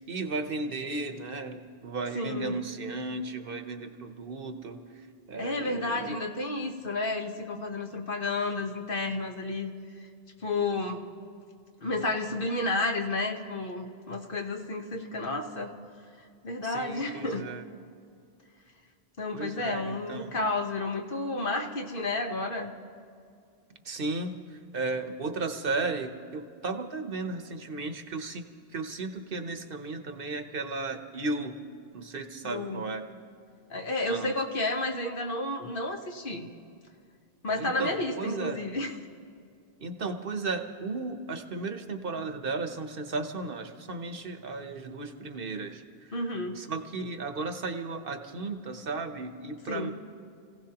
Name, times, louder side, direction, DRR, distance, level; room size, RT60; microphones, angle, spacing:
voice 1, 0.1-6.1 16.6-17.6 19.3-20.4 23.8-28.4 28.7-31.6 31.9-33.0 34.1-34.3 37.6-38.6 39.8-49.9, right 3 dB, 60° right, 7 dB, 1.1 m, -35 dB
voice 2, 2.1-2.6 5.4-9.7 10.4-11.0 11.8-15.7 16.4-17.5 19.2-22.7 32.4-32.8 33.7-36.5 37.4-38.9 46.1-46.6 49.7-49.9, left 2 dB, 60° left, 3 dB, 1.3 m, -31 dB
29.5 x 16.5 x 2.9 m, 2.4 s
omnidirectional pair, 1.1 m